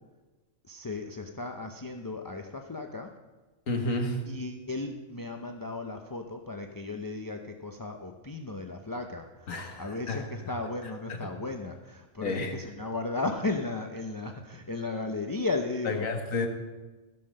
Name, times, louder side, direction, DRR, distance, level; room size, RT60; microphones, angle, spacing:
voice 1, 0.6-3.1 4.3-9.5 9.8-16.1, left 3 dB, 30° left, 4 dB, 0.4 m, -35 dB
voice 2, 3.7-4.2 9.5-10.5 11.1-11.3 12.2-12.5 15.9-16.5, left 2 dB, 80° left, 4 dB, 1.8 m, -31 dB
16.0 x 5.7 x 6.5 m, 1.2 s
omnidirectional pair, 1.4 m